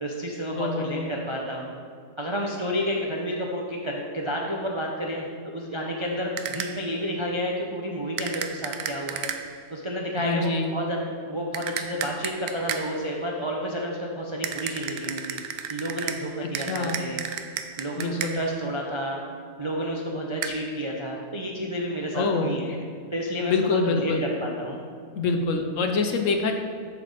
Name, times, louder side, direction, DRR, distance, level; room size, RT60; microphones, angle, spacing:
voice 1, 0.0-1.7 2.2-9.3 9.7-17.2 17.8-19.2 19.6-22.8 23.1-24.1 24.4-24.8, equal, 40° right, -2 dB, 0.4 m, -30 dB
voice 2, 0.6-1.1 10.2-10.7 16.4-17.1 18.0-18.4 22.1-22.5 23.5-24.2 25.2-26.5, left 4 dB, 65° left, 4 dB, 0.9 m, -26 dB
sound 1, 6.4-6.9 8.2-9.6 11.5-13.1 14.4-18.6 20.4-20.5, right 8 dB, 80° right, 1.1 m, -33 dB
7.3 x 6.8 x 4.0 m, 2.2 s
omnidirectional pair, 1.6 m